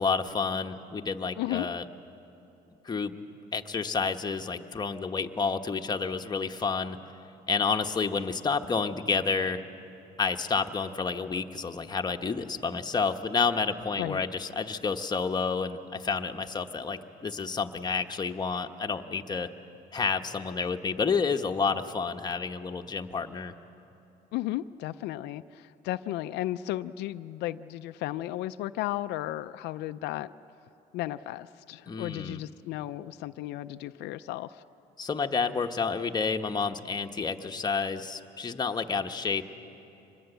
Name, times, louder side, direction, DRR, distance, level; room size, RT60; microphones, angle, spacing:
voice 1, 0.0-1.8 2.8-3.1 3.5-7.0 7.5-9.6 10.2-19.5 19.9-23.5 31.9-32.4 35.0-39.4, left 5 dB, 25° left, 5 dB, 1.1 m, -30 dB
voice 2, 1.4-1.7 14.0-14.2 24.3-30.3 30.9-34.6, left 15 dB, 85° left, 11 dB, 0.5 m, -34 dB
25.0 x 20.5 x 8.0 m, 3.0 s
cardioid pair, 110°, 17 cm